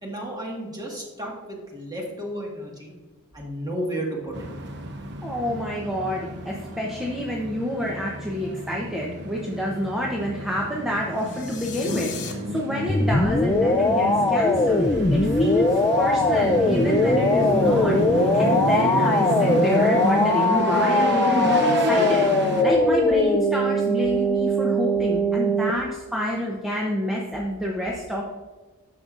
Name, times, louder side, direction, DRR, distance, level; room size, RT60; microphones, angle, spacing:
voice 1, 0.0-2.9 3.3-4.5, right 1 dB, 20° right, -2 dB, 1.6 m, -32 dB
sound 1, 4.3-22.6, right 1 dB, 55° right, 0.8 m, -29 dB
voice 2, 5.2-28.2, equal, ahead, -2 dB, 0.7 m, -28 dB
sound 2, 11.1-12.3, left 8 dB, 55° left, 1.1 m, -37 dB
sound 3, 12.9-25.7, left 1 dB, 15° left, 0.4 m, -21 dB
10.0 x 6.7 x 2.5 m, 1.2 s
head